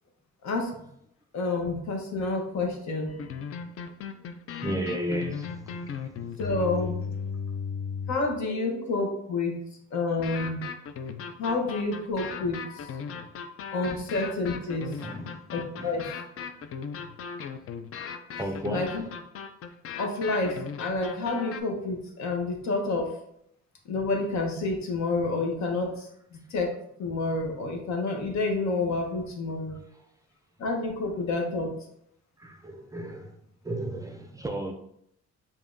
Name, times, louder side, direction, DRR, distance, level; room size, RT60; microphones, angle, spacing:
voice 1, 1.3-3.2 6.4-6.9 8.1-9.6 9.9-10.7 11.4-12.9 13.7-14.9 15.5-16.1 18.6-19.0 20.0-23.1 23.9-26.1 26.5-26.7 27.0-29.8 30.6-31.7, left 3 dB, 65° left, 1.0 m, -29 dB
sound 1, 3.1-8.4 10.2-21.6, left 6 dB, 50° left, 0.4 m, -37 dB
voice 2, 4.6-6.4 15.0-15.4 15.8-16.0 18.4-19.0 32.4-33.3 33.6-34.7, right 1 dB, 10° right, 0.5 m, -34 dB
4.8 x 2.7 x 2.5 m
cardioid pair, 90°, 30 cm